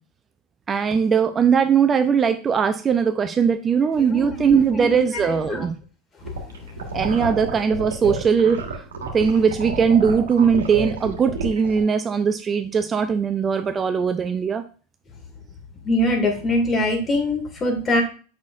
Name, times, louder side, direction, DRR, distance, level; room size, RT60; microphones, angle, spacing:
voice 1, 0.7-5.8 6.9-8.6 9.1-14.6, right 6 dB, 25° right, 9 dB, 0.5 m, -20 dB
voice 2, 4.0-5.7 15.8-18.0, left 1 dB, 25° left, 3 dB, 2.1 m, -23 dB
sound 1, 6.2-11.8, right 4 dB, 80° right, 1.4 m, -30 dB
7.3 x 5.8 x 2.5 m, 0.38 s
hypercardioid pair, 85°, 0 cm